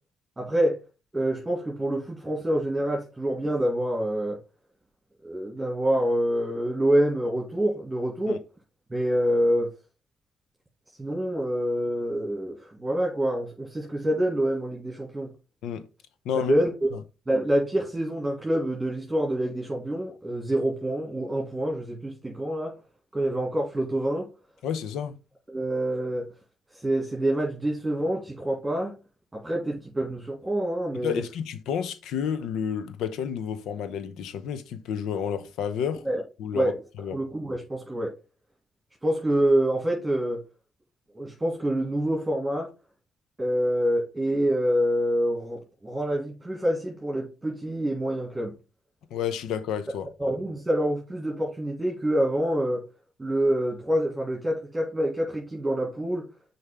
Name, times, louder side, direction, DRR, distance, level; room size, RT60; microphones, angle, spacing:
voice 1, 0.4-0.8 1.1-4.4 5.2-8.4 8.9-9.7 11.0-15.3 16.4-16.9 17.3-22.7 23.1-24.3 25.5-26.3 26.7-28.9 29.3-31.2 36.0-36.2 36.5-36.7 37.1-38.1 39.0-40.4 41.2-42.7 43.4-48.5 50.2-52.8 53.2-56.2, right 1 dB, 15° right, 2.0 m, -26 dB
voice 2, 24.6-25.2 31.0-36.0 36.4-36.7 37.0-37.2 49.1-50.1, left 8 dB, 80° left, 0.7 m, -30 dB
6.5 x 4.4 x 3.5 m
cardioid pair, 75°, 0 cm